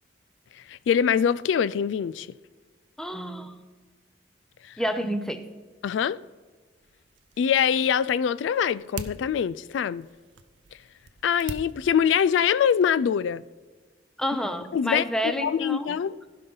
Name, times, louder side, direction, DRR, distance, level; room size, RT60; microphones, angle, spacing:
voice 1, 0.7-2.3 5.8-6.2 7.4-10.0 11.2-13.4 14.7-16.1, left 8 dB, 85° left, 0.3 m, -24 dB
voice 2, 3.0-3.6 4.8-5.5 14.2-16.0, equal, 5° left, 0.6 m, -29 dB
sound 1, 6.7-13.1, right 4 dB, 85° right, 0.6 m, -45 dB
15.5 x 5.5 x 3.9 m
head